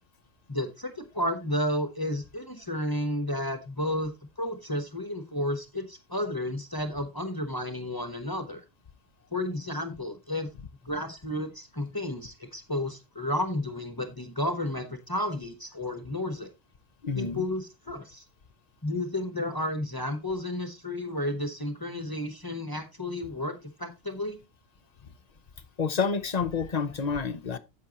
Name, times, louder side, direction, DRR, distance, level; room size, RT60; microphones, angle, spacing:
voice 1, 0.5-8.6 9.3-10.5 10.8-16.5 17.1-18.2 18.8-24.4, left 1 dB, 20° left, 1.1 m, -32 dB
voice 2, 17.0-17.4 25.8-27.6, left 5 dB, 40° left, 0.7 m, -28 dB
10.0 x 7.8 x 2.9 m
omnidirectional pair, 1.3 m